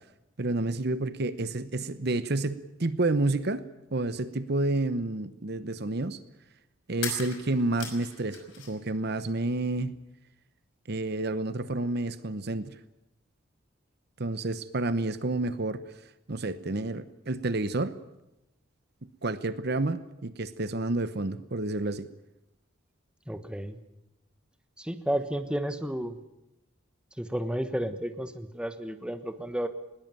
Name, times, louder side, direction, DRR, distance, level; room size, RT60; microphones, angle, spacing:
voice 1, 0.4-3.6 3.9-6.2 6.9-10.0 10.9-12.7 14.2-15.8 16.3-17.9 19.2-22.1, right 2 dB, 50° right, 13 dB, 1.0 m, -29 dB
sound 1, 7.0-8.9 9.2-10.1, left 7 dB, 65° left, 5.6 m, -40 dB
voice 2, 23.3-23.8 24.8-26.2 27.2-29.7, right 1 dB, 5° right, 9 dB, 1.2 m, -32 dB
20.5 x 19.5 x 9.1 m, 0.91 s
head